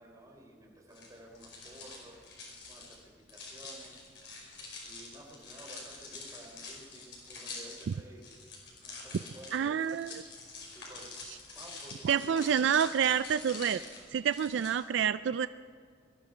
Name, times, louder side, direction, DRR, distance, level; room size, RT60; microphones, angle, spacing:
voice 1, 0.0-2.2 2.7-4.0 4.8-8.3 8.8-10.0 10.7-11.1 11.5-12.9, right 1 dB, 20° right, -2 dB, 3.4 m, -53 dB
sound 1, 0.9-14.7, left 3 dB, 65° left, 5.1 m, -46 dB
voice 2, 9.5-10.2 12.0-13.8 14.1-15.5, right 8 dB, 70° right, 14 dB, 0.3 m, -28 dB
21.5 x 13.0 x 5.0 m, 2.2 s
head